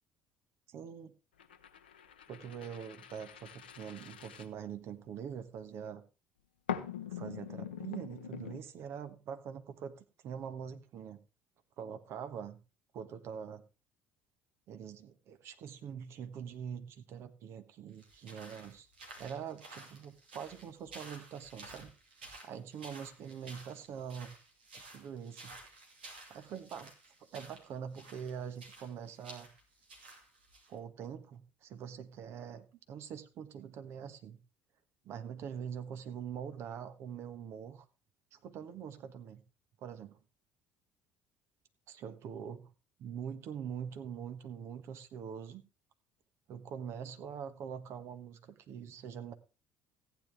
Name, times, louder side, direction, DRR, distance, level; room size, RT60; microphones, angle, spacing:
voice 1, 0.7-1.1 2.3-6.0 7.1-11.2 11.8-12.6 12.9-13.6 14.7-18.9 19.2-21.9 22.5-24.3 24.9-25.6 26.3-26.9 27.3-29.5 30.7-34.4 35.0-37.8 38.3-39.4 39.8-40.2 41.9-42.6 43.0-45.6 46.5-49.3, right 8 dB, 55° right, 10 dB, 1.4 m, -44 dB
sound 1, 1.4-5.2 6.7-8.6, left 9 dB, 90° left, 0.8 m, -43 dB
sound 2, 17.9-30.7, right 2 dB, 85° right, 2.7 m, -53 dB
15.0 x 9.5 x 3.5 m, 0.30 s
hypercardioid pair, 60°, 5 cm